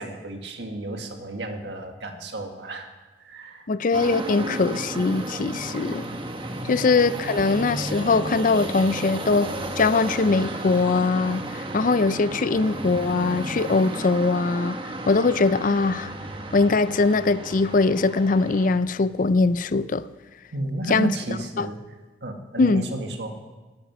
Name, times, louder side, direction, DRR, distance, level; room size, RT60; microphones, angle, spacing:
voice 1, 0.0-2.9 3.2-3.7 6.6-6.8 20.5-21.8 22.2-23.4, right 2 dB, 70° right, 4 dB, 1.7 m, -32 dB
voice 2, 3.7-6.0 6.7-14.8 15.1-16.1 16.5-20.0 20.9-21.1 21.6-21.7 22.6-22.8, left 3 dB, 45° left, 15 dB, 0.5 m, -21 dB
sound 1, 3.9-18.8, right 1 dB, 30° right, 1.2 m, -33 dB
18.5 x 8.9 x 6.1 m, 1.2 s
head